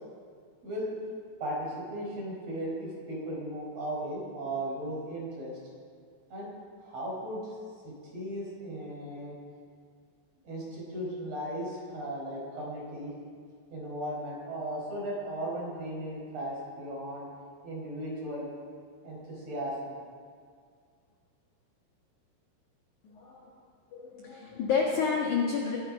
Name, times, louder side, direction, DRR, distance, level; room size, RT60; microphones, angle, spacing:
voice 1, 1.4-5.6 6.3-6.5 6.8-7.5 7.8-9.4 10.4-13.1 13.7-17.3 17.6-18.5 19.0-20.0, right 1 dB, 30° right, -4 dB, 5.4 m, -36 dB
voice 2, 23.0-23.5 23.9-25.8, left 5 dB, 75° left, -1 dB, 1.8 m, -29 dB
23.0 x 12.0 x 5.3 m, 2.1 s
omnidirectional pair, 5.9 m